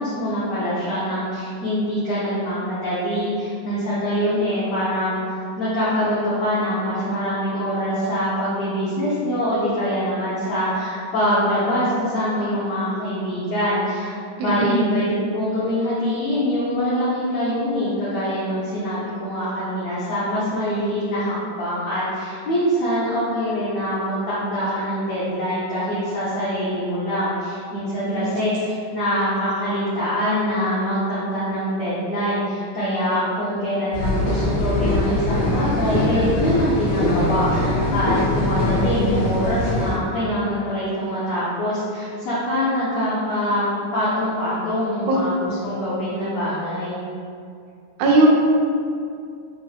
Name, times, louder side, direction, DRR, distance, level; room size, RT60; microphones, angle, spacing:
voice 1, 0.0-14.1 14.4-28.5 28.9-43.7 43.9-47.0, equal, 80° left, -11 dB, 1.2 m, -24 dB
voice 2, 14.4-14.8 28.1-28.3 45.1-45.2 48.0-48.3, right 2 dB, 80° right, -2 dB, 1.6 m, -18 dB
sound 1, 33.9-39.9, left 1 dB, 60° left, 2.5 m, -22 dB
5.3 x 2.0 x 2.3 m, 2.4 s
omnidirectional pair, 3.5 m